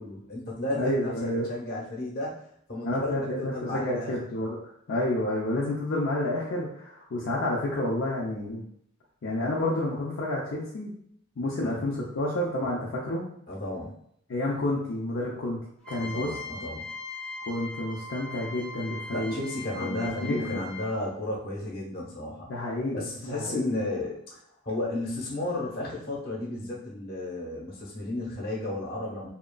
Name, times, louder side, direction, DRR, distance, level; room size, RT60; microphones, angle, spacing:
voice 1, 0.0-2.4 2.7-4.1 11.6-11.8 13.5-13.9 15.9-16.9 19.1-22.5 22.9-24.4 24.6-29.3, left 1 dB, 50° left, -3 dB, 0.9 m, -33 dB
voice 2, 0.7-1.5 2.8-4.6 4.9-8.6 9.2-10.9 11.4-13.3 14.3-15.6 15.9-16.4 17.5-19.4 19.8-20.6 22.5-23.8, left 1 dB, 70° left, -5 dB, 0.5 m, -29 dB
sound 1, 15.8-21.1, left 3 dB, 5° left, 0.6 m, -40 dB
2.8 x 2.4 x 2.2 m, 0.69 s
head